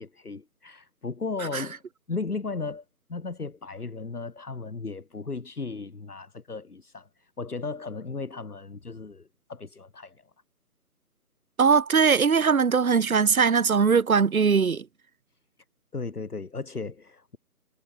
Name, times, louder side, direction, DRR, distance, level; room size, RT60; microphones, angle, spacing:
voice 1, 0.0-1.8 2.1-2.8 3.1-10.2 15.9-17.4, left 4 dB, 70° left, 2.1 m, -35 dB
voice 2, 11.6-14.9, right 6 dB, 60° right, 0.9 m, -20 dB
figure-of-eight pair, 155°, 47 cm